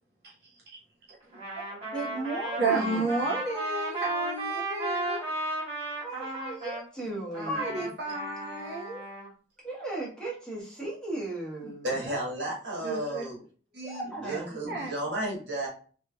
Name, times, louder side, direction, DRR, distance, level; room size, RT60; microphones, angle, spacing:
voice 1, 0.2-0.6 1.1-1.4 1.7-1.8 2.6-5.2 7.4-9.0 11.6-11.7 12.0-12.2 12.8-13.2 13.7-14.4 14.7-14.9, right 2 dB, 60° right, -4 dB, 0.7 m, -32 dB
Trumpet, 1.3-6.8 7.3-9.3, right 2 dB, 35° right, 1.6 m, -35 dB
voice 2, 1.9-3.0 5.9-7.8 9.6-11.9 13.8-14.9, right 2 dB, 5° left, -6 dB, 1.2 m, -36 dB
voice 3, 11.8-13.4 14.1-15.7, right 1 dB, 80° right, -2 dB, 1.3 m, -33 dB
3.2 x 3.0 x 2.2 m, 0.40 s
head